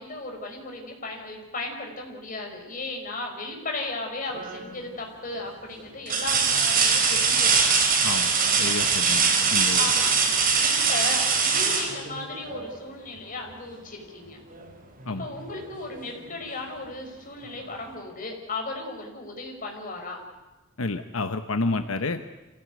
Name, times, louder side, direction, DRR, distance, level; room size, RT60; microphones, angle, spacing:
voice 1, 0.0-7.7 9.8-10.3 10.6-14.4 15.2-20.2, left 2 dB, 40° left, 2 dB, 5.4 m, -36 dB
sound 1, 4.3-4.8 5.3-5.4 6.1-12.7 14.5-14.7 15.1-16.2 17.5-17.6, right 5 dB, 45° right, 4.7 m, -22 dB
voice 2, 8.6-9.9 15.1-15.3 20.8-22.2, left 3 dB, 90° left, 8 dB, 1.1 m, -29 dB
26.0 x 17.0 x 9.4 m, 1.1 s
head